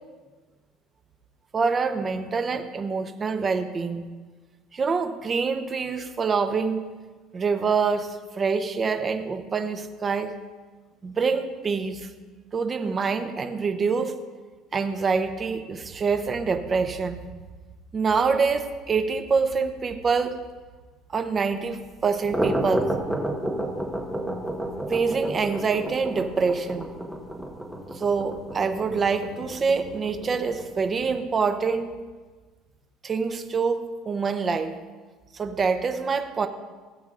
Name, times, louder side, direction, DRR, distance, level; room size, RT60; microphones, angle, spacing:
voice 1, 1.5-4.0 4.7-6.9 7.3-10.3 11.0-12.1 12.5-14.2 14.7-17.2 17.9-20.4 21.1-22.9 24.9-26.9 27.9-31.9 33.0-34.8 35.3-36.5, right 5 dB, 30° right, 7 dB, 0.7 m, -25 dB
sound 1, 22.0-31.1, right 1 dB, ahead, 1.1 m, -31 dB
17.0 x 8.0 x 2.5 m, 1.4 s
cardioid pair, 120°, 0 cm